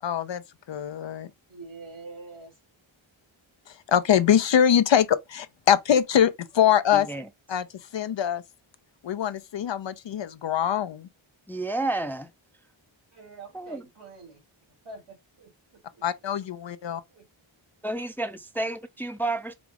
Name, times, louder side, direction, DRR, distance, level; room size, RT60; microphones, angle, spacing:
voice 1, 0.0-1.3 3.7-7.1 7.5-8.4 9.0-11.1 16.0-17.0, left 9 dB, 65° left, 0.6 m, -23 dB
voice 2, 1.5-2.6 13.1-14.4 14.8-16.0 17.1-17.2, right 3 dB, 85° right, 2.8 m, -45 dB
voice 3, 11.5-12.3 13.5-13.8 17.8-19.5, right 2 dB, 5° left, 0.5 m, -30 dB
5.0 x 2.3 x 3.3 m
wide cardioid pair, 80°, 49 cm